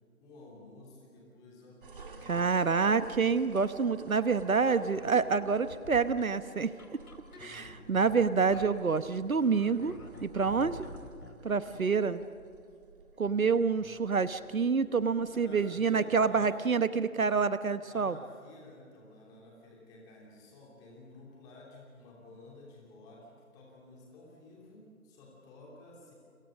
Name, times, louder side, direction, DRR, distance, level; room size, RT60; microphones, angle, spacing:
voice 1, 0.2-2.8 7.4-7.8 12.7-12.8 13.7-14.0 15.1-16.5 17.8-26.1, left 2 dB, 10° left, -2 dB, 2.9 m, -53 dB
sound 1, 1.8-15.7, right 3 dB, 35° right, 2.2 m, -53 dB
voice 2, 2.2-6.7 7.4-9.9 10.2-10.9 11.4-12.2 13.2-18.2, right 5 dB, 70° right, 13 dB, 1.2 m, -27 dB
sound 2, 4.6-11.9, left 2 dB, 80° left, 3.9 m, -50 dB
29.0 x 26.0 x 6.5 m, 2.3 s
figure-of-eight pair, 160°, 44 cm